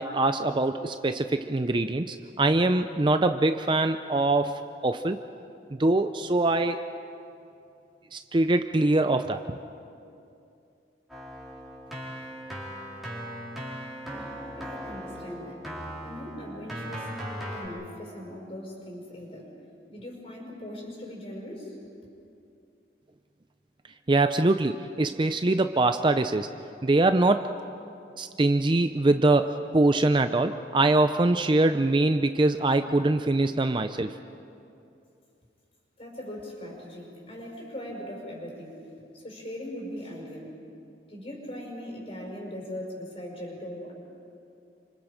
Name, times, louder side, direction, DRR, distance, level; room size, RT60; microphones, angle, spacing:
voice 1, 0.0-5.2 5.7-6.8 8.1-9.6 24.1-26.5 26.8-27.5 28.2-34.2, right 2 dB, 25° right, 9 dB, 0.5 m, -23 dB
Keyboard (musical), 11.1-17.7, equal, ahead, 4.4 m, -38 dB
voice 2, 14.0-15.6 16.0-17.1 17.5-21.8 36.0-38.9 39.1-40.5 41.1-43.9, equal, 35° left, -2 dB, 6.0 m, -40 dB
29.5 x 26.0 x 5.1 m, 2.6 s
head